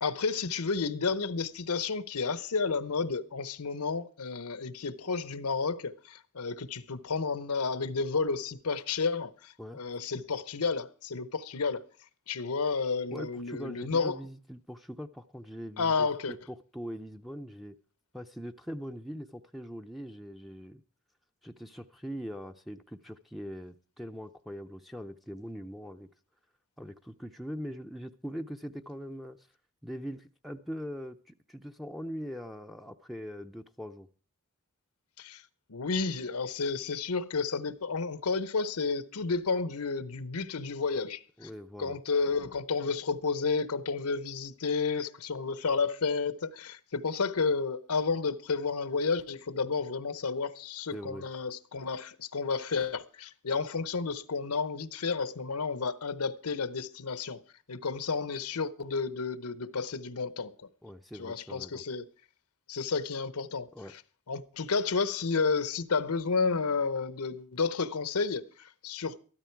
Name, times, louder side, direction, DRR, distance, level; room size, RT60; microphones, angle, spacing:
voice 1, 0.0-11.8 12.3-14.2 15.8-16.3 35.2-35.4 35.7-41.5 41.8-57.4 57.7-60.5 61.2-62.0 62.7-63.7 64.3-69.2, left 4 dB, 85° left, 0.9 m, -31 dB
voice 2, 13.1-17.8 18.1-20.8 21.4-26.1 26.8-29.5 29.8-34.1 41.4-42.0 50.9-51.2 60.8-61.8 63.7-63.9, equal, ahead, 0.5 m, -42 dB
13.0 x 13.0 x 4.6 m
head